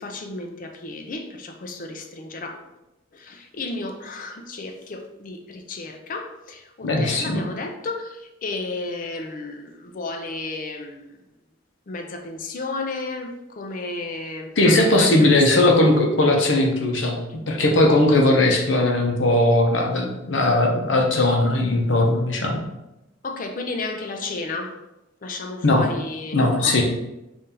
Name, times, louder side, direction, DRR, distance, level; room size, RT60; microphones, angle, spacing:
voice 1, 0.0-2.6 3.1-11.2 11.9-15.5 23.2-24.8 25.2-26.8, left 3 dB, 45° left, 4 dB, 0.5 m, -33 dB
voice 2, 6.8-7.4 14.6-17.2 17.5-22.7 25.6-25.9 26.3-26.8, left 2 dB, 70° left, 1 dB, 0.8 m, -18 dB
4.2 x 2.7 x 3.7 m, 0.94 s
head